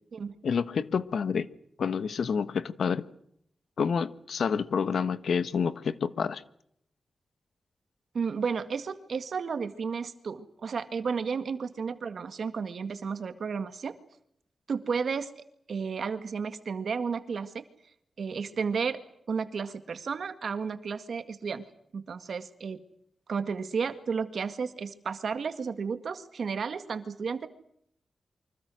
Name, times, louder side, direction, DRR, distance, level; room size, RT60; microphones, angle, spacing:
voice 1, 0.4-1.5 1.8-3.1 3.8-6.4, left 6 dB, 75° left, 14 dB, 1.2 m, -28 dB
voice 2, 8.1-14.0 14.7-17.6 18.2-19.0 19.3-21.7 21.9-22.8 23.3-27.5, right 5 dB, 60° right, 10 dB, 1.9 m, -32 dB
29.0 x 24.5 x 6.3 m, 0.71 s
wide cardioid pair, 175°, 0 cm